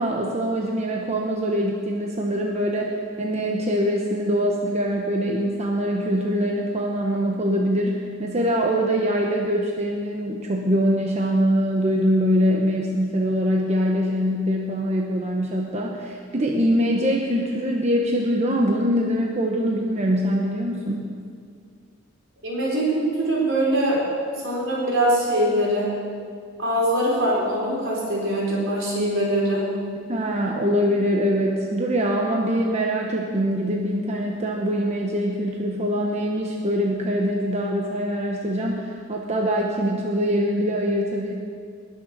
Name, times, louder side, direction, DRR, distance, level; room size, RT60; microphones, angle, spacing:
voice 1, 0.0-21.1 30.1-41.3, equal, 35° right, 0 dB, 1.0 m, -23 dB
voice 2, 22.4-24.0 24.4-25.9 26.6-29.7, right 1 dB, 75° right, -4 dB, 4.1 m, -22 dB
19.5 x 6.8 x 6.6 m, 2.2 s
head